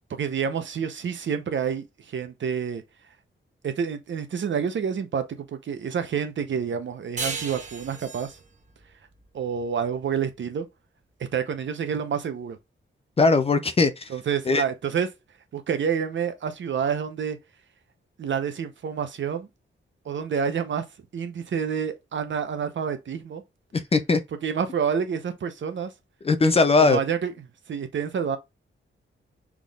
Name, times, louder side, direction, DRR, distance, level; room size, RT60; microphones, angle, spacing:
voice 1, 0.1-2.8 3.6-8.4 9.3-10.7 11.2-12.6 14.1-15.1 15.5-17.4 18.2-19.5 20.0-20.8 21.1-23.4 24.4-25.9 26.8-27.3 27.7-28.4, right 7 dB, 65° right, 0.8 m, -28 dB
sound 1, 7.2-10.3, right 3 dB, 35° right, 1.0 m, -36 dB
voice 2, 13.2-14.1 14.5-14.6 23.7-24.2 26.2-27.0, left 3 dB, 30° left, 0.4 m, -20 dB
6.0 x 3.6 x 2.4 m
wide cardioid pair, 175°, 21 cm